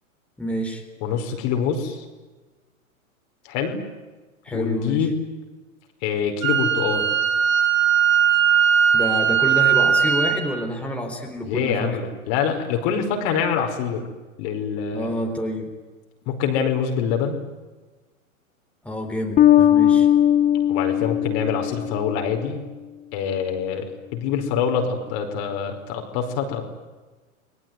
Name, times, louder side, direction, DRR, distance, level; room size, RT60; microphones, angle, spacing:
voice 1, 0.4-0.8 4.4-5.1 8.9-11.9 14.9-15.7 18.8-20.1, equal, 5° left, 2 dB, 3.9 m, -28 dB
voice 2, 1.0-2.1 3.5-3.8 4.5-5.2 6.0-7.1 11.4-14.1 14.4-15.1 16.2-17.4 20.7-22.6 23.1-26.7, left 7 dB, 45° left, 4 dB, 5.1 m, -25 dB
Wind instrument woodwind instrument, 6.4-10.4, right 8 dB, 70° right, 5.3 m, -19 dB
Bass guitar, 19.4-22.4, left 11 dB, 20° left, 0.8 m, -18 dB
30.0 x 21.0 x 9.5 m, 1.3 s
hypercardioid pair, 105°, 42 cm